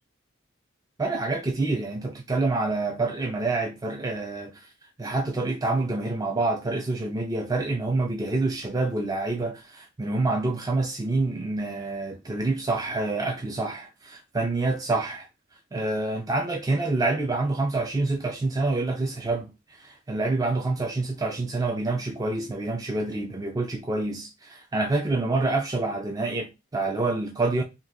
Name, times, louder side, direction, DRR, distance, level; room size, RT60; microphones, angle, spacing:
voice 1, 1.0-4.7 5.0-15.3 15.7-27.6, right 2 dB, 20° right, 0.4 m, -27 dB
2.7 x 2.3 x 3.4 m
head